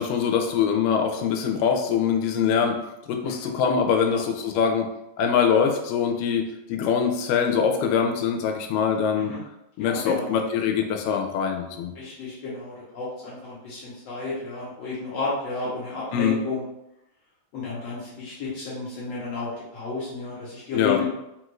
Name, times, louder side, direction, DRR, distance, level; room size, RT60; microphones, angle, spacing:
voice 1, 0.0-4.9 5.2-9.4 9.8-11.9 16.1-16.4 20.7-21.0, left 7 dB, 85° left, 4 dB, 2.2 m, -23 dB
voice 2, 9.8-10.4 12.0-16.6 17.5-21.1, left 4 dB, 65° left, -7 dB, 1.7 m, -32 dB
5.2 x 2.4 x 3.0 m, 0.86 s
omnidirectional pair, 3.7 m